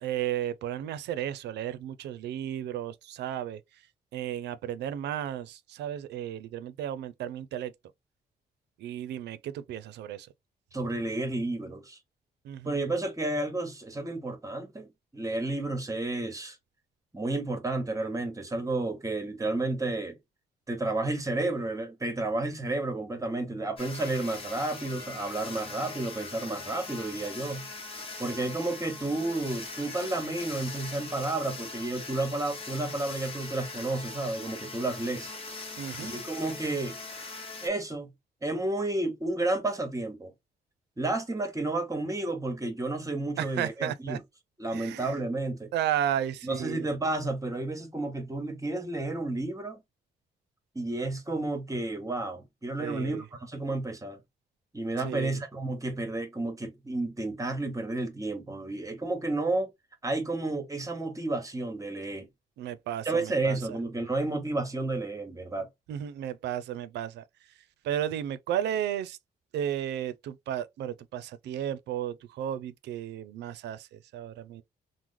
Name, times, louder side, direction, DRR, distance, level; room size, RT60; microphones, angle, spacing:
voice 1, 0.0-3.6 4.1-7.7 8.8-10.3 12.4-12.8 35.8-36.1 43.4-44.2 44.7-45.2 45.7-46.9 52.8-53.2 55.0-55.4 62.6-63.6 65.9-67.2 67.8-69.2 69.5-74.6, right 10 dB, 85° right, 0.4 m, -33 dB
voice 2, 10.7-12.0 12.6-14.9 15.1-16.6 17.1-20.2 20.7-27.7 28.2-35.3 36.0-37.0 37.6-38.1 38.4-40.3 41.0-44.2 44.6-45.7 46.4-49.8 50.7-54.2 54.7-59.7 60.0-62.3 63.0-65.7, right 2 dB, 20° right, 1.0 m, -31 dB
sound 1, 23.8-37.7, left 3 dB, 35° left, 1.0 m, -41 dB
3.0 x 2.0 x 3.5 m
cardioid pair, 95°, 17 cm